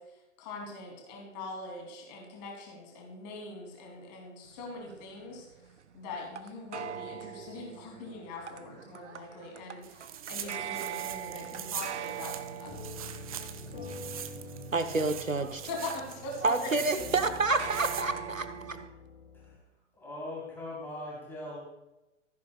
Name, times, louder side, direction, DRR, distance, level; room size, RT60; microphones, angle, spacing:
voice 1, 0.0-5.6 5.9-12.7 15.7-16.9, left 2 dB, 35° left, 0 dB, 2.7 m, -42 dB
sound 1, 4.5-18.9, right 9 dB, 65° right, 0.7 m, -43 dB
sound 2, 9.8-18.0, right 10 dB, 30° right, 0.5 m, -43 dB
sound 3, 11.2-19.6, left 3 dB, 65° left, 3.4 m, -47 dB
voice 2, 14.7-15.7 16.4-18.8, right 3 dB, 90° right, 10 dB, 0.9 m, -29 dB
voice 3, 19.9-21.6, left 1 dB, 5° left, -6 dB, 3.4 m, -40 dB
14.5 x 10.5 x 2.2 m, 1.0 s
figure-of-eight pair, 115°, 39 cm